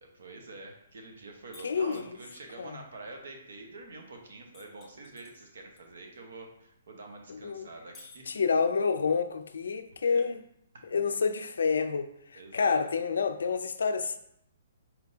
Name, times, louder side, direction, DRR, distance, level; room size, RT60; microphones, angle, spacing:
voice 1, 0.0-8.2 10.0-10.2 10.7-10.9 12.3-12.8, right 2 dB, 70° right, 1.0 m, -46 dB
sound 1, 1.5-2.1 4.5-5.8 6.1-6.2 7.9-8.9, left 3 dB, 5° left, 0.6 m, -54 dB
voice 2, 1.6-2.0 2.6-2.8 7.3-7.7 8.3-10.4 10.8-14.2, left 5 dB, 85° left, 0.4 m, -28 dB
4.4 x 3.5 x 2.7 m
hypercardioid pair, 175°, 0 cm